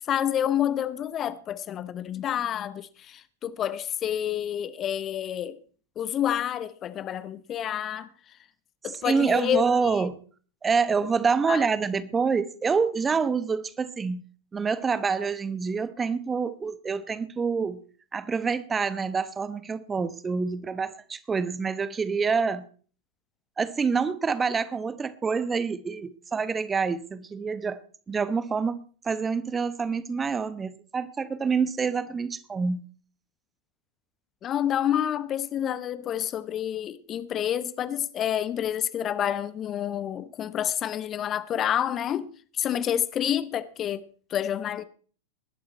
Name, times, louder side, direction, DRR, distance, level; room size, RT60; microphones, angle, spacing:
voice 1, 0.1-5.6 6.0-8.1 8.8-10.0 11.5-11.6 34.4-44.8, left 10 dB, 30° left, 0.8 m, -28 dB
voice 2, 9.0-10.2 10.6-14.2 14.5-17.8 18.1-22.6 23.6-27.8 28.1-32.8, right 5 dB, 15° right, 1.0 m, -27 dB
20.0 x 11.5 x 4.4 m
figure-of-eight pair, 90°, 0 cm